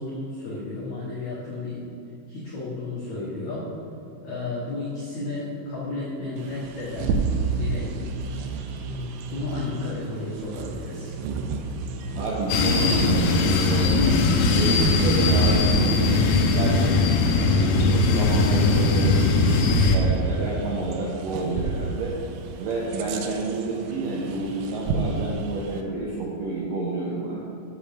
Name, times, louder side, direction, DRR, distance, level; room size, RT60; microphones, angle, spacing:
voice 1, 0.0-1.8 2.3-3.6 4.2-7.1 7.6-8.0 8.8-11.1, left 2 dB, 60° left, -8 dB, 2.1 m, -33 dB
Bird vocalization bird call bird song, 6.4-25.8, right 4 dB, 90° right, 2.1 m, -32 dB
voice 2, 12.2-14.1 14.5-17.1 17.5-22.2 22.6-27.5, right 3 dB, 75° right, -5 dB, 2.1 m, -29 dB
sound 1, 12.5-20.0, left 3 dB, 80° left, 2.5 m, -20 dB
14.0 x 6.3 x 3.3 m, 2.4 s
omnidirectional pair, 5.0 m